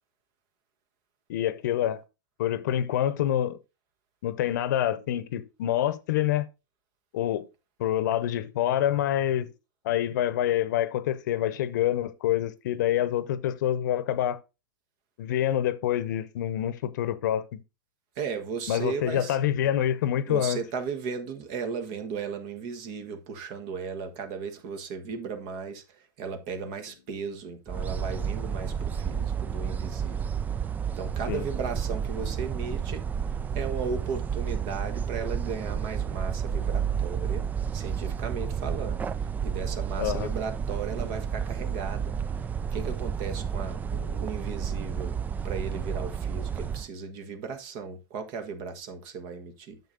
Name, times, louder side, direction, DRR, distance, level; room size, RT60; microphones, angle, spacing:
voice 1, 1.3-2.0 2.4-3.6 4.2-6.5 7.1-7.5 7.8-9.5 9.8-14.4 15.2-17.6 18.7-20.6 31.3-31.4 40.0-40.3 43.9-44.2, left 11 dB, 60° left, 0.8 m, -27 dB
voice 2, 18.2-19.4 20.3-25.8 26.2-30.3 31.0-33.1 33.5-37.4 37.7-42.1 42.7-43.8 44.1-45.1 45.4-49.8, right 5 dB, 45° right, 1.3 m, -36 dB
sound 1, 27.7-46.9, right 7 dB, 15° right, 0.3 m, -31 dB
9.4 x 7.1 x 2.6 m
hypercardioid pair, 105°, 11 cm